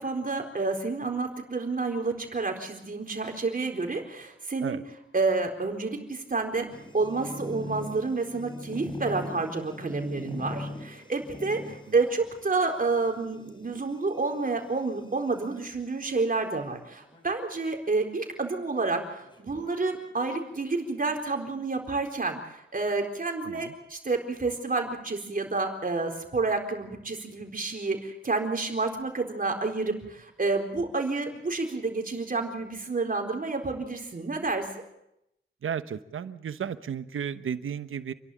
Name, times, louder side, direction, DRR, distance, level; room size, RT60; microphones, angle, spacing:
voice 1, 0.0-4.8 5.1-6.7 6.9-34.7, right 3 dB, 45° right, 3 dB, 4.1 m, -29 dB
sound 1, 6.7-16.2 16.9-17.5 17.8-17.9 18.2-18.3 19.2-20.4, left 1 dB, 25° left, 3.8 m, -42 dB
voice 2, 35.6-38.1, right 8 dB, 80° right, 12 dB, 1.0 m, -34 dB
28.5 x 11.5 x 8.6 m, 0.83 s
cardioid pair, 70°, 21 cm